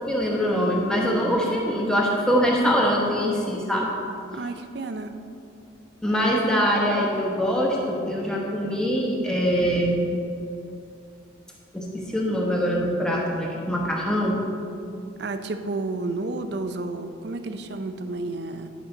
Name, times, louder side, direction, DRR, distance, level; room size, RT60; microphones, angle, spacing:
voice 1, 0.0-3.9 6.0-10.0 11.7-14.4, equal, 5° left, -3 dB, 1.1 m, -23 dB
voice 2, 4.3-5.1 15.2-18.7, right 2 dB, 60° right, 8 dB, 0.5 m, -31 dB
11.0 x 5.8 x 3.9 m, 2.6 s
head